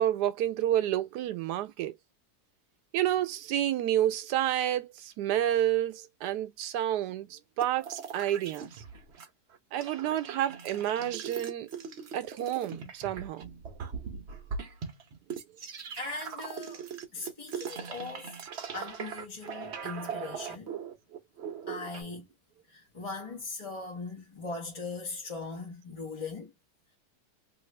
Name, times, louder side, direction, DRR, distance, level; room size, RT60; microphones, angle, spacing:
voice 1, 0.0-1.9 2.9-8.7 9.7-11.7 12.1-13.5, right 12 dB, 80° right, 1.1 m, -29 dB
sound 1, 7.6-9.3 9.5-22.0, right 6 dB, 55° right, 0.8 m, -40 dB
voice 2, 16.0-18.3 18.7-20.7 21.7-22.2 22.7-26.5, left 3 dB, 30° left, 0.8 m, -40 dB
3.0 x 2.4 x 3.1 m
omnidirectional pair, 1.8 m